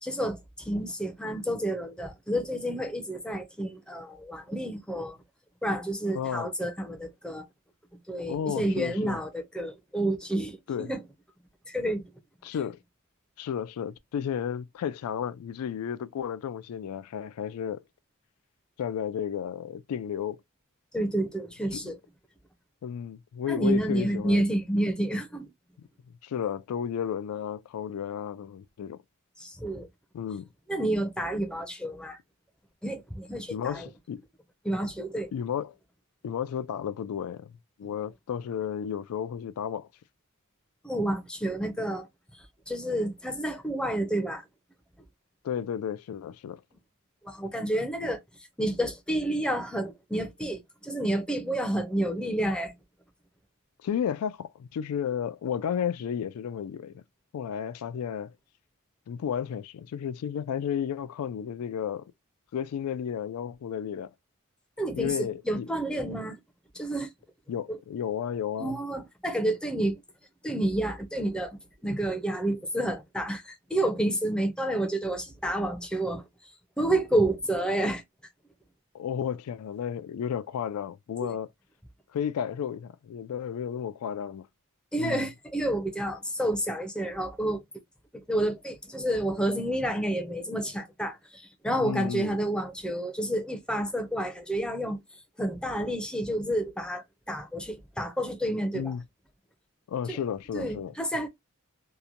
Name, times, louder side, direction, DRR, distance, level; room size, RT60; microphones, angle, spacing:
voice 1, 0.0-5.2 5.6-7.5 8.1-11.0 11.7-12.0 20.9-22.0 23.5-25.5 29.4-29.9 30.7-32.2 32.8-33.9 34.6-35.3 37.8-37.9 40.8-42.1 42.3-44.4 47.2-48.2 48.6-52.7 64.8-66.4 66.7-67.1 67.7-67.8 68.6-70.0 70.4-76.2 76.8-78.0 81.2-81.3 84.9-87.6 88.3-95.0 95.4-98.9 100.1-100.2 100.5-101.3, right 1 dB, 5° left, 0.5 m, -29 dB
voice 2, 6.1-6.5 8.3-9.2 10.7-10.9 12.4-12.8 13.4-17.8 18.8-20.4 22.8-24.4 26.2-29.0 30.1-30.5 33.5-34.2 35.3-35.8 36.2-39.9 45.4-46.6 53.8-57.0 57.3-58.3 59.1-62.0 62.5-64.1 64.9-65.7 67.5-68.8 78.9-81.5 82.1-84.5 85.0-85.3 91.8-92.3 98.7-99.0 99.9-100.9, left 8 dB, 85° left, 0.3 m, -33 dB
2.9 x 2.1 x 2.4 m
head